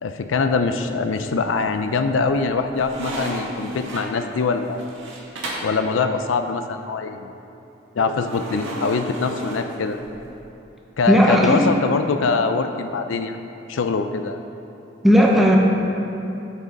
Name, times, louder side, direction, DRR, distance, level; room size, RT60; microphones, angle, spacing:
voice 1, 0.0-4.8 5.6-7.3 8.0-10.0 11.0-13.4 13.7-14.4, left 4 dB, 90° left, 7 dB, 0.4 m, -23 dB
sound 1, 1.1-1.7 2.1-5.8 8.2-10.3, right 1 dB, 80° right, 1.8 m, -33 dB
voice 2, 11.1-11.7 15.0-15.6, equal, ahead, -3 dB, 0.9 m, -15 dB
13.5 x 6.2 x 4.0 m, 2.9 s
head